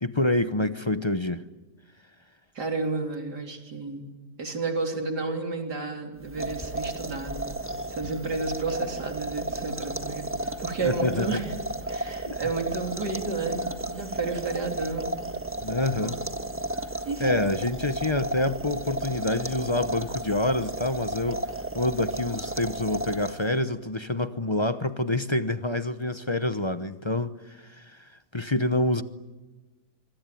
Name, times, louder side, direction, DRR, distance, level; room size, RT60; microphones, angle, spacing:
voice 1, 0.0-1.4 10.8-11.4 12.3-12.4 15.6-16.1 17.2-21.4 21.7-29.0, left 2 dB, 25° left, 0.6 m, -27 dB
voice 2, 2.5-4.1 4.4-7.5 7.9-11.5 11.9-15.2 16.0-16.2 17.1-17.4, right 3 dB, 80° right, 4.1 m, -31 dB
sound 1, 6.2-23.6, right 1 dB, 10° right, 1.4 m, -33 dB
25.5 x 25.0 x 9.2 m
omnidirectional pair, 1.7 m